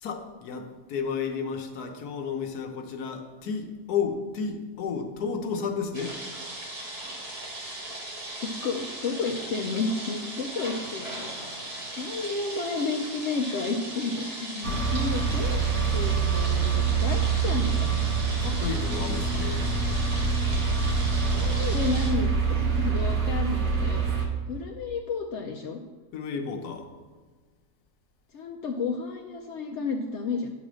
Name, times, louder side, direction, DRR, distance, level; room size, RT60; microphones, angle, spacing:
voice 1, 0.0-6.2 18.4-19.8 26.1-26.9, left 5 dB, 80° left, 5 dB, 1.4 m, -32 dB
sound 1, 5.9-22.1, right 1 dB, 90° right, 2.6 m, -38 dB
voice 2, 8.4-11.3 12.0-17.9 20.9-25.8 28.3-30.5, left 4 dB, 60° left, 1 dB, 0.8 m, -32 dB
sound 2, 14.6-24.3, right 5 dB, 65° right, 1.6 m, -25 dB
9.4 x 4.2 x 6.2 m, 1.4 s
omnidirectional pair, 1.6 m